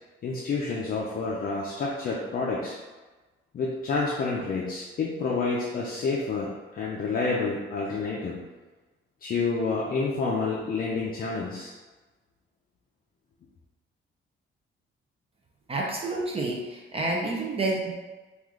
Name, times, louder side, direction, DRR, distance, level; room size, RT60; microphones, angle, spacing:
voice 1, 0.2-2.8 3.5-8.4 9.2-11.7, left 4 dB, 45° left, -4 dB, 0.4 m, -29 dB
voice 2, 15.7-17.9, right 2 dB, 30° right, -1 dB, 0.4 m, -29 dB
3.1 x 2.4 x 3.6 m, 1.2 s
cardioid pair, 150°, 21 cm